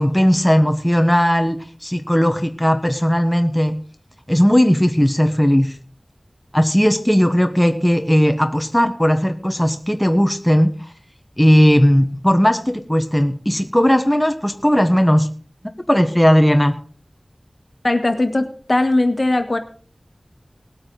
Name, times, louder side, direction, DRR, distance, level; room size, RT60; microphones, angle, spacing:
voice 1, 0.0-3.8 4.3-5.7 6.5-10.7 11.4-15.3 15.9-16.8, equal, 10° left, 6 dB, 1.2 m, -16 dB
voice 2, 17.8-19.6, left 2 dB, 55° left, 8 dB, 1.5 m, -19 dB
19.5 x 8.7 x 3.9 m, 0.41 s
wide cardioid pair, 55°, 0 cm